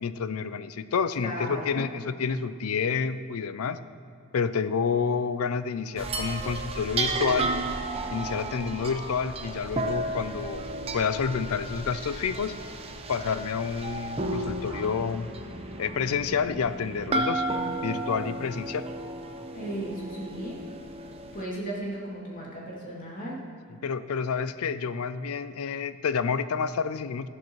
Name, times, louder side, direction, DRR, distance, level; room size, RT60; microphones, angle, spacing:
voice 1, 0.0-3.8 4.3-7.5 8.1-10.6 10.9-12.6 13.1-15.3 15.8-17.4 17.8-18.9 23.8-27.3, left 6 dB, 85° left, 13 dB, 0.5 m, -29 dB
voice 2, 1.2-1.9 19.5-20.6 21.3-23.4, right 1 dB, 40° left, -5 dB, 2.7 m, -35 dB
sound 1, 6.0-21.4, right 2 dB, 25° right, 0.7 m, -33 dB
13.5 x 11.5 x 3.1 m, 2.5 s
head